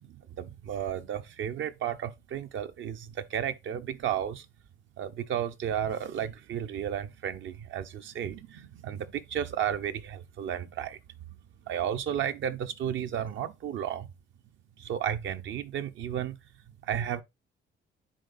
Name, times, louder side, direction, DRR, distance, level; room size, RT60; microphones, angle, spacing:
voice 1, 0.0-4.5 5.0-11.0 11.7-14.1 14.8-16.4 16.8-17.2, right 9 dB, 70° right, 0.8 m, -33 dB
10.0 x 4.0 x 2.5 m
cardioid pair, 90°, 20 cm